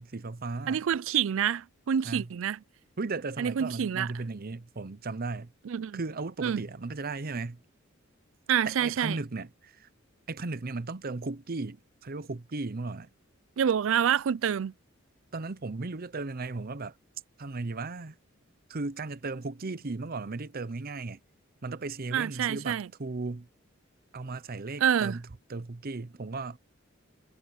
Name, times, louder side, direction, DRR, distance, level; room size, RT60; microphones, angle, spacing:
voice 1, 0.0-0.8 2.0-2.3 3.0-5.5 5.9-7.6 8.6-9.9 10.3-13.1 15.3-17.0 17.4-18.2 18.7-21.2 21.6-23.5 24.1-25.2 25.5-26.6, right 3 dB, 50° right, 0.8 m, -36 dB
voice 2, 0.7-2.6 3.4-4.1 5.7-6.0 6.4-6.6 8.5-9.2 13.6-14.7 22.1-22.9 24.8-25.2, right 8 dB, 70° right, 0.4 m, -27 dB
head